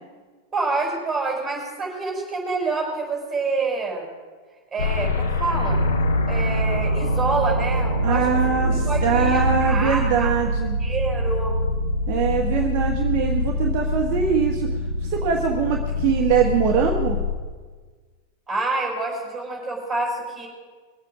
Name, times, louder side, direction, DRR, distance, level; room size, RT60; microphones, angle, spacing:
voice 1, 0.5-4.1 4.7-5.8 6.3-10.3 10.8-11.6 18.5-20.5, right 3 dB, 15° right, -1 dB, 5.2 m, -27 dB
sound 1, 4.8-17.4, left 4 dB, 70° left, 1.4 m, -26 dB
Piano, 5.7-15.9, right 4 dB, 80° right, 0.8 m, -27 dB
voice 2, 8.0-10.7 12.1-14.7 15.0-17.2, right 7 dB, 40° right, 1 dB, 1.4 m, -22 dB
21.5 x 8.2 x 6.1 m, 1.4 s
figure-of-eight pair, 90°, 0 cm